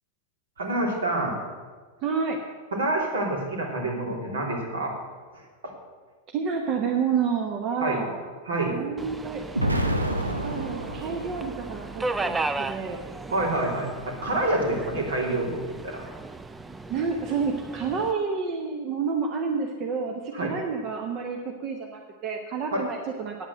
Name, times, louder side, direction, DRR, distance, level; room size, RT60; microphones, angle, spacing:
voice 1, 0.6-1.4 2.7-5.0 5.6-5.7 7.8-8.0 8.4-8.8 13.3-16.1 20.3-20.5 22.7-22.8, right 1 dB, 65° right, 0 dB, 3.0 m, -27 dB
voice 2, 2.0-2.4 6.3-8.2 8.7-9.4 10.4-13.0 16.9-23.4, right 5 dB, 35° right, 2 dB, 1.1 m, -29 dB
Subway metro underground, 9.0-18.1, right 3 dB, 10° right, 0.5 m, -35 dB
Explosion, 9.6-11.7, right 1 dB, 85° right, 0.9 m, -28 dB
9.2 x 8.7 x 7.7 m, 1.4 s
figure-of-eight pair, 90°, 0 cm